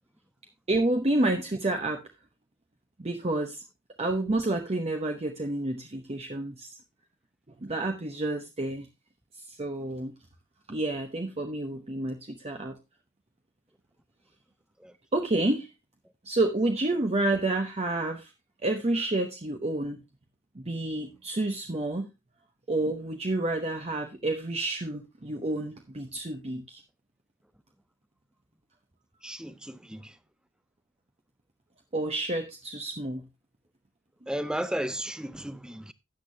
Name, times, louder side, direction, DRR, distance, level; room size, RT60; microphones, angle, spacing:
voice 1, 0.7-2.0 3.0-3.6 4.0-6.7 7.6-8.9 9.5-10.1 10.7-12.8 15.1-15.7 16.2-18.3 18.6-20.0 20.5-22.1 22.7-26.8 31.9-33.3, right 2 dB, 30° right, 0.9 m, -29 dB
voice 2, 29.2-30.2 34.3-35.9, right 1 dB, 5° right, 0.6 m, -34 dB
12.5 x 8.3 x 2.7 m
head